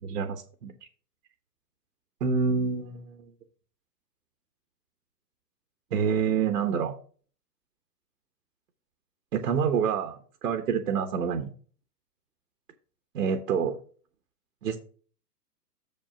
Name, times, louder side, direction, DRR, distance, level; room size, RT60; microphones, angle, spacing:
voice 1, 0.0-0.7 2.2-3.2 5.9-6.9 9.3-10.2 10.4-11.5 13.1-13.8 14.6-14.8, right 6 dB, 70° right, 5 dB, 1.2 m, -27 dB
6.9 x 5.5 x 4.9 m, 0.42 s
figure-of-eight pair, 110°, 50 cm